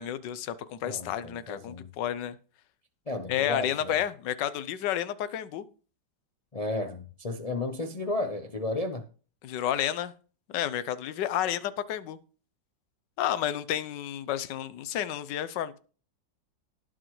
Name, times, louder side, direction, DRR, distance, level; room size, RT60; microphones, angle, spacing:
voice 1, 0.0-2.3 3.3-5.6 9.4-10.1 10.5-12.2 13.2-15.8, left 11 dB, 75° left, 14 dB, 1.4 m, -31 dB
voice 2, 0.8-1.9 3.1-4.0 6.5-9.0, left 2 dB, 50° left, 6 dB, 0.4 m, -33 dB
18.5 x 6.3 x 3.1 m, 0.38 s
omnidirectional pair, 1.9 m